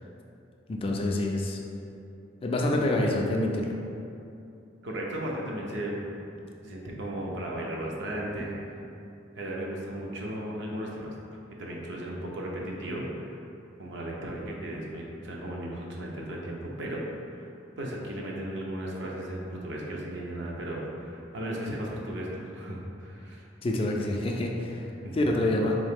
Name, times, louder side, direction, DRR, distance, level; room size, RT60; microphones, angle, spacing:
voice 1, 0.7-1.6 2.4-3.7 23.6-24.9 25.1-25.8, left 1 dB, 30° left, 0 dB, 0.3 m, -27 dB
voice 2, 4.8-6.0 6.6-8.6 9.4-11.1 11.6-13.4 13.8-17.0 17.3-17.4 17.8-23.4 25.0-25.2, right 1 dB, 65° right, -2 dB, 0.6 m, -35 dB
3.9 x 2.7 x 3.5 m, 2.7 s
head